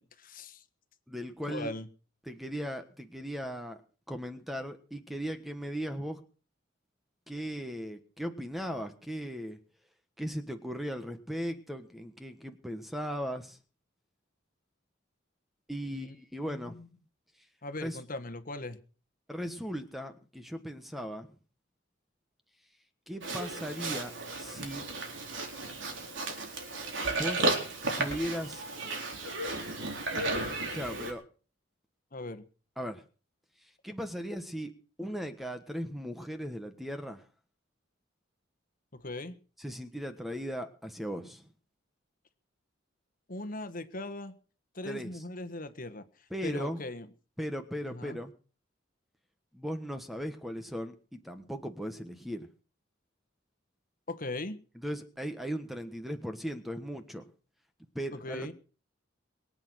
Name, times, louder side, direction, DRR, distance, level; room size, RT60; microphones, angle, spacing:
voice 1, 0.2-0.6 1.5-1.9 15.9-16.1 16.4-16.9 17.6-18.8 32.1-32.4 38.9-39.4 43.3-44.3 44.7-46.0 46.4-47.1 47.8-48.2 54.1-54.6 58.1-58.5, left 2 dB, 45° left, 9 dB, 1.5 m, -39 dB
voice 2, 1.1-1.7 2.3-3.8 4.1-6.2 7.3-9.6 10.2-13.6 15.7-16.8 17.8-18.0 19.3-21.3 23.1-24.9 27.1-27.5 28.0-28.6 30.7-31.2 32.8-33.0 33.8-34.7 35.0-37.2 39.6-41.5 44.8-45.1 46.3-46.8 47.4-48.3 49.5-52.5 54.8-57.3 57.9-58.5, equal, ahead, 8 dB, 1.4 m, -37 dB
Livestock farm animals working animals, 23.2-31.1, right 2 dB, 65° right, 4.3 m, -34 dB
23.0 x 9.0 x 6.4 m, 0.39 s
head